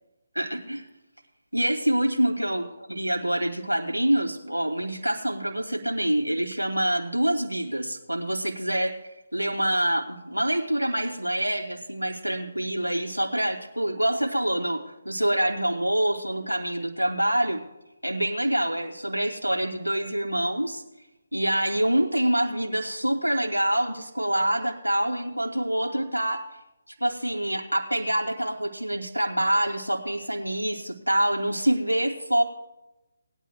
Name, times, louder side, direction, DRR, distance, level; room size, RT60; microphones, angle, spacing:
voice 1, 0.3-0.9 1.5-8.9 9.3-17.6 18.0-20.8 21.3-26.4 26.9-32.4, right 1 dB, 90° right, 1 dB, 2.5 m, -26 dB
20.5 x 11.5 x 2.3 m, 0.96 s
figure-of-eight pair, 145°, 0 cm